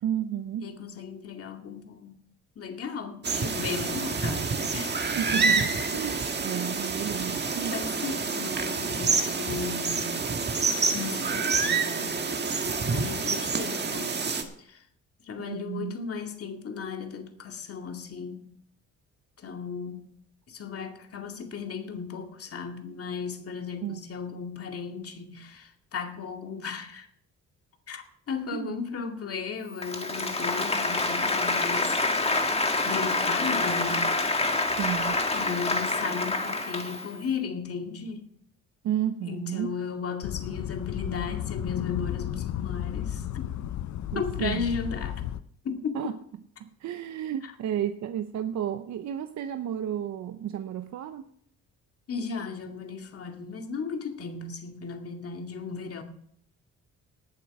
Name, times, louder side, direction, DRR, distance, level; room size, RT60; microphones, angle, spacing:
voice 1, 0.0-0.7 5.1-7.8 15.4-16.0 23.8-24.0 28.5-28.7 34.8-35.2 38.8-39.8 44.1-44.7 45.9-46.1 46.6-51.3, right 10 dB, 65° right, 9 dB, 0.8 m, -32 dB
voice 2, 0.6-2.2 2.6-5.1 7.7-10.2 10.9-12.3 12.9-14.1 14.6-14.8 15.2-18.5 19.4-20.1 20.5-27.1 27.9-34.2 35.3-38.3 39.3-43.5 44.1-45.3 45.6-46.1 47.4-47.5 52.1-56.0, left 5 dB, 50° left, 4 dB, 2.3 m, -36 dB
sound 1, 3.2-14.4, right 4 dB, 35° right, 1.7 m, -28 dB
Applause, 29.7-37.2, left 3 dB, 20° left, 1.6 m, -27 dB
sound 2, 40.2-45.4, left 11 dB, 70° left, 0.7 m, -33 dB
18.5 x 7.6 x 4.8 m, 0.64 s
cardioid pair, 90°, 30 cm